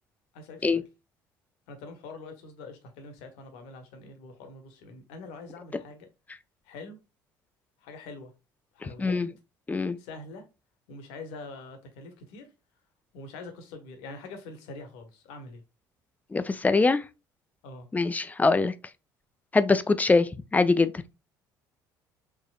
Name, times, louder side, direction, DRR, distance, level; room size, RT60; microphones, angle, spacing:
voice 1, 0.3-0.9 1.7-6.1 6.6-7.0 7.8-8.3 8.7-9.2 10.0-10.4 10.9-12.5 13.1-15.6 17.6-17.9, left 3 dB, 60° left, 1.1 m, -44 dB
voice 2, 16.3-17.0 17.9-18.7 19.5-20.9, left 3 dB, 15° left, 0.5 m, -23 dB
4.9 x 3.6 x 2.3 m
figure-of-eight pair, 55°, 11 cm